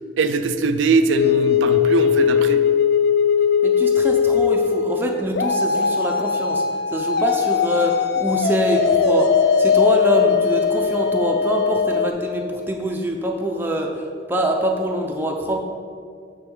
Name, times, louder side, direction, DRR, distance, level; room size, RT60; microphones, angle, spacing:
voice 1, 0.2-2.6, right 4 dB, 90° right, 9 dB, 0.4 m, -21 dB
sound 1, 1.1-12.1, left 6 dB, 60° left, 0.3 m, -19 dB
voice 2, 3.6-15.6, right 1 dB, 10° right, 1 dB, 0.4 m, -24 dB
8.9 x 3.4 x 3.7 m, 2.3 s
head